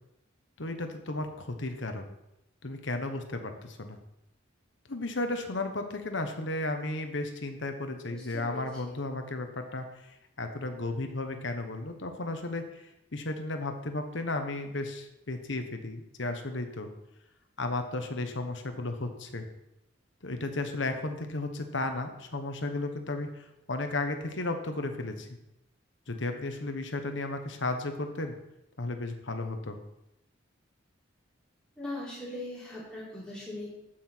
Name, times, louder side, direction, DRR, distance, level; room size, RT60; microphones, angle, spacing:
voice 1, 0.6-2.1 2.6-4.0 4.9-16.9 17.6-19.5 20.2-25.3 26.1-28.3 28.8-29.8, left 2 dB, 65° left, 6 dB, 1.2 m, -34 dB
voice 2, 8.1-9.0 31.8-33.7, left 1 dB, 5° left, -9 dB, 4.2 m, -40 dB
14.5 x 5.9 x 4.6 m, 0.87 s
head